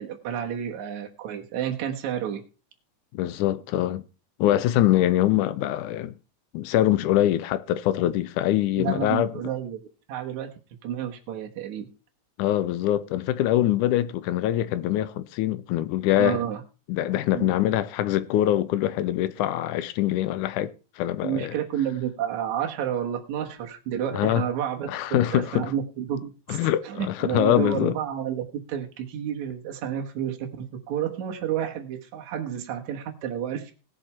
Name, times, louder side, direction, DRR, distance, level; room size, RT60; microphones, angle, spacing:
voice 1, 0.0-2.4 8.8-9.8 10.1-10.5 10.8-11.9 16.2-16.6 17.3-17.5 21.2-33.7, right 9 dB, 70° right, 2.6 m, -30 dB
voice 2, 3.1-4.0 4.4-6.1 6.5-9.3 12.4-16.4 16.9-21.5 24.1-24.4 24.9-25.7 26.5-27.9, left 13 dB, 90° left, 2.2 m, -24 dB
18.0 x 6.6 x 4.4 m
omnidirectional pair, 3.5 m